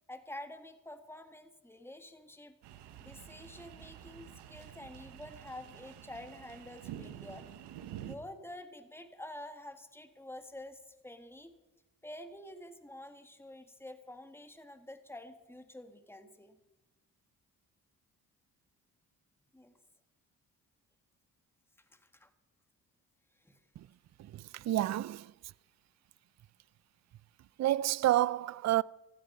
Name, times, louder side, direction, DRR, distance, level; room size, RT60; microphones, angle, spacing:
voice 1, 0.1-2.5 3.0-7.5 8.0-11.5 12.0-16.6 19.5-19.7 21.9-22.3 23.4-23.6, left 1 dB, 5° left, 1.9 m, -48 dB
sound 1, 2.6-8.1, right 11 dB, 90° right, 1.2 m, -48 dB
voice 2, 24.2-25.3 27.6-28.8, right 14 dB, 45° right, 0.4 m, -29 dB
15.0 x 14.5 x 5.4 m
supercardioid pair, 55°, 40 cm